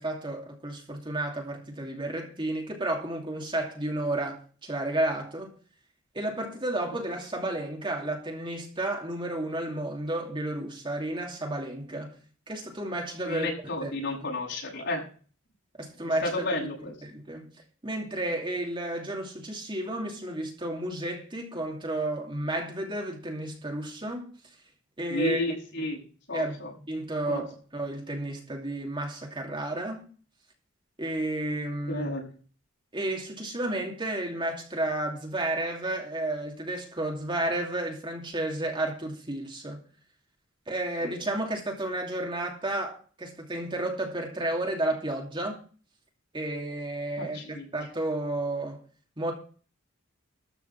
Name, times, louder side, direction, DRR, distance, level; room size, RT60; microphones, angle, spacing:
voice 1, 0.0-5.5 6.1-12.1 12.5-13.5 13.8-13.9 15.8-16.7 17.0-17.5 17.8-24.3 25.0-25.4 26.3-30.0 31.0-32.1 32.9-39.8 40.7-45.6 46.3-48.8 49.2-49.3, right 1 dB, 25° right, 2.7 m, -32 dB
voice 2, 13.2-15.0 16.2-16.9 25.1-26.0 26.3-26.7 27.3-27.4 31.9-32.2 47.2-47.6, left 2 dB, 60° left, 7.1 m, -31 dB
13.5 x 5.9 x 7.3 m
head